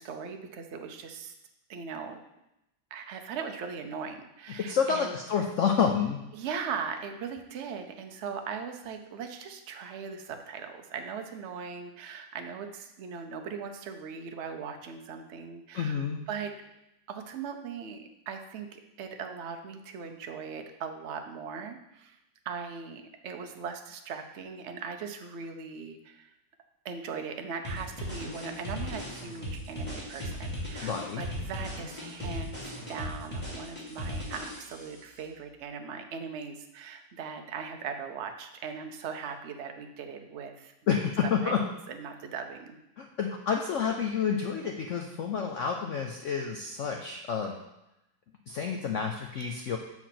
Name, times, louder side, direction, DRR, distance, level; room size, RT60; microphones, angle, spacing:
voice 1, 0.0-1.3 1.7-2.2 2.9-5.1 6.3-16.5 17.1-22.2 22.4-26.3 26.8-41.0 41.4-42.8, right 6 dB, 60° right, 5 dB, 0.7 m, -39 dB
voice 2, 4.7-6.2 15.7-16.2 30.8-31.2 40.9-41.6 43.0-47.5 48.5-49.8, left 6 dB, 75° left, 3 dB, 0.7 m, -29 dB
sound 1, 27.6-35.0, equal, 5° left, 2.7 m, -37 dB
7.0 x 4.5 x 5.8 m, 0.88 s
omnidirectional pair, 2.0 m